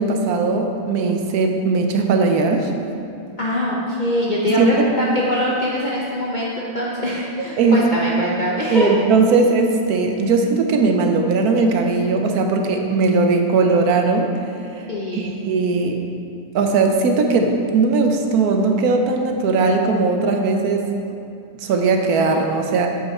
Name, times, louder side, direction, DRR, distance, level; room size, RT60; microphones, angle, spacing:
voice 1, 0.0-2.7 4.5-4.9 7.4-7.8 8.7-14.3 14.8-14.9 15.1-16.0 16.5-20.9 21.1-21.2 21.6-22.9, right 4 dB, 65° right, 3 dB, 1.0 m, -18 dB
voice 2, 3.4-8.9 14.9-15.3, left 1 dB, 65° left, -5 dB, 0.4 m, -23 dB
8.1 x 5.6 x 4.2 m, 2.7 s
omnidirectional pair, 2.0 m